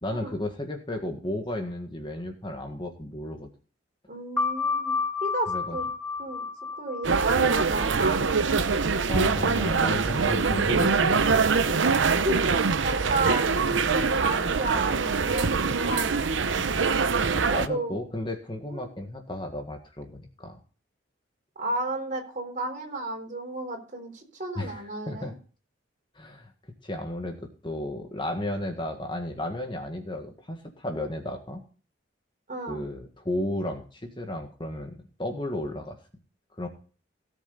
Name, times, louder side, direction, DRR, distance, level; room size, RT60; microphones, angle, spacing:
voice 1, 0.0-3.5 5.5-5.8 9.1-12.0 13.6-13.8 16.5-17.0 17.3-20.6 24.6-25.3 26.2-26.5 26.8-27.4 27.6-31.6 32.7-36.0 36.6-36.7, left 1 dB, 25° left, 4 dB, 1.7 m, -34 dB
voice 2, 4.1-4.9 5.2-5.9 6.2-6.4 6.8-8.3 12.1-16.3 17.4-18.0 18.7-18.9 21.6-25.3 32.5-32.8, right 2 dB, 45° right, 3 dB, 3.9 m, -32 dB
sound 1, 4.4-9.5, left 4 dB, 5° left, 1.1 m, -32 dB
sound 2, 7.0-17.7, right 4 dB, 90° right, 0.8 m, -24 dB
17.5 x 7.5 x 3.9 m, 0.38 s
head